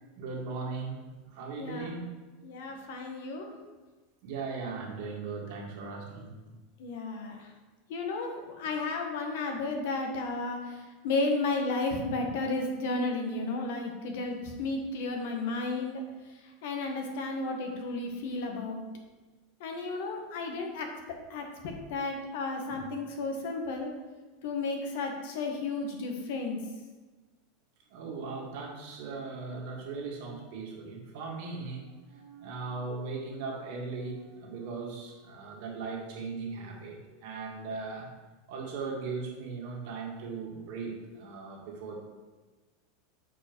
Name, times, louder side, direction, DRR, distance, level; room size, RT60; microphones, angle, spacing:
voice 1, 0.2-1.0 1.3-2.1 4.2-6.3 22.6-22.9 27.9-38.1 38.5-42.0, right 4 dB, 50° right, -1 dB, 1.9 m, -38 dB
voice 2, 1.6-1.9 2.4-3.5 6.8-7.4 7.9-10.8 11.0-16.0 16.6-18.8 19.6-20.9 21.3-23.9 24.4-26.6, left 3 dB, 60° left, 3 dB, 1.5 m, -33 dB
6.9 x 5.3 x 6.2 m, 1.3 s
supercardioid pair, 175°, 0 cm